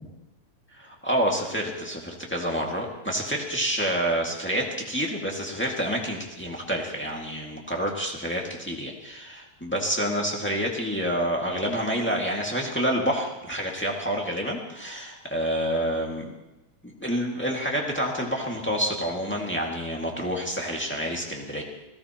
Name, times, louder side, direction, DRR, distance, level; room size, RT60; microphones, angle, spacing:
voice 1, 0.8-16.3 16.8-21.6, equal, 10° left, -2 dB, 0.7 m, -28 dB
28.0 x 16.5 x 3.0 m, 0.94 s
omnidirectional pair, 4.0 m